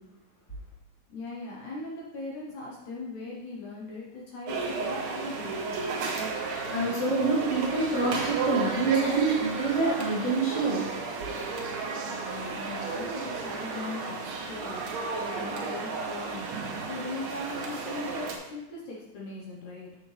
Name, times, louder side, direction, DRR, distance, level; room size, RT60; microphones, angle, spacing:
voice 1, 1.1-5.8 12.0-16.5 16.9-20.0, left 2 dB, 70° left, -3 dB, 2.1 m, -39 dB
sound 1, 4.5-18.4, right 4 dB, 70° right, 1.7 m, -33 dB
voice 2, 6.7-10.9, right 3 dB, 15° left, -6 dB, 1.1 m, -27 dB
7.6 x 6.4 x 3.2 m, 0.97 s
omnidirectional pair, 4.2 m